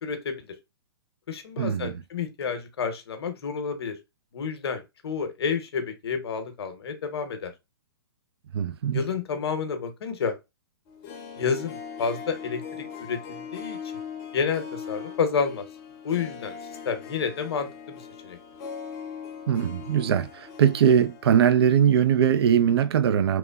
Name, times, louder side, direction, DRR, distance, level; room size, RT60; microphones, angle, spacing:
voice 1, 0.0-0.4 1.3-4.0 4.3-7.5 8.9-10.4 11.4-13.8 14.3-15.7 16.0-16.6 16.8-18.4, left 6 dB, 70° left, 0.7 m, -30 dB
voice 2, 1.6-2.0 8.5-9.0 19.5-23.4, right 8 dB, 70° right, 0.4 m, -21 dB
Harp, 10.9-21.9 22.1-22.2, left 7 dB, 30° left, 0.6 m, -40 dB
2.9 x 2.1 x 2.2 m
hypercardioid pair, 130°, 14 cm